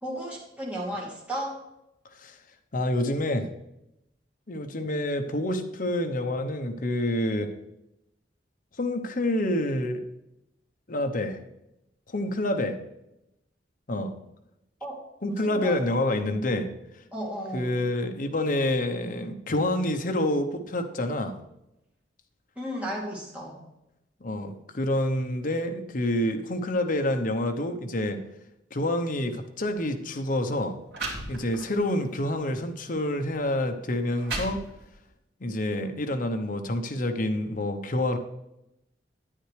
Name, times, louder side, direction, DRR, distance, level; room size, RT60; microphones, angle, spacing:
voice 1, 0.0-1.6 14.8-15.8 17.1-17.8 22.6-23.6, equal, 10° right, -6 dB, 2.6 m, -34 dB
voice 2, 2.7-3.5 4.5-7.5 8.8-10.0 10.9-11.4 12.1-12.8 13.9-14.1 15.2-16.7 17.5-21.3 24.2-28.2 28.7-30.7 31.3-34.6 35.4-38.2, left 1 dB, 50° left, 5 dB, 0.8 m, -27 dB
sound 1, 29.7-29.9 30.6-30.7 30.9-31.8 32.4-32.6 33.3-33.4 33.9-35.1, right 3 dB, 70° right, 2.4 m, -35 dB
10.0 x 9.0 x 3.3 m, 0.88 s
head